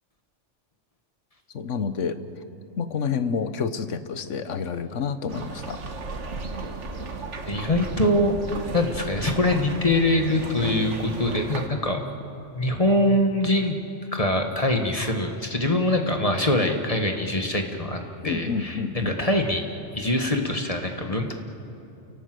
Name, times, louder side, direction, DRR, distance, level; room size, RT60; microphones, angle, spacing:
voice 1, 1.5-2.2 2.8-5.8 18.2-19.1, left 6 dB, 80° left, 11 dB, 1.3 m, -28 dB
sound 1, 5.3-11.7, right 3 dB, 75° right, 1.8 m, -35 dB
voice 2, 7.4-8.4 8.7-12.0 12.5-13.8 14.1-19.7 19.9-21.3, left 1 dB, 30° left, 4 dB, 1.6 m, -23 dB
30.0 x 18.0 x 7.8 m, 2.7 s
omnidirectional pair, 1.3 m